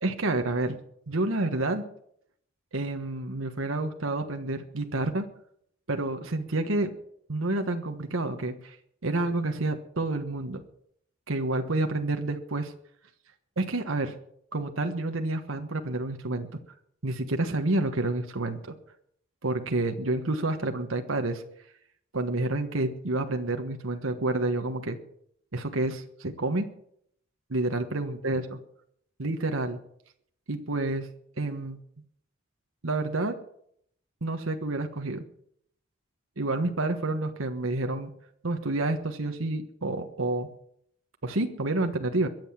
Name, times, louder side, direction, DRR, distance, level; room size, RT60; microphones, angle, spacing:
voice 1, 0.0-0.8 1.1-1.8 2.7-5.3 5.9-6.9 7.3-8.8 9.0-10.6 11.3-12.7 13.6-14.1 14.5-16.6 17.0-18.7 19.4-21.4 22.1-25.0 25.5-26.7 27.5-28.4 29.2-29.8 30.5-31.1 31.4-31.8 32.8-33.3 34.2-35.2 36.4-38.1 38.4-40.5 41.2-42.3, right 2 dB, 80° right, 5 dB, 1.3 m, -29 dB
22.5 x 7.9 x 7.3 m, 0.70 s
head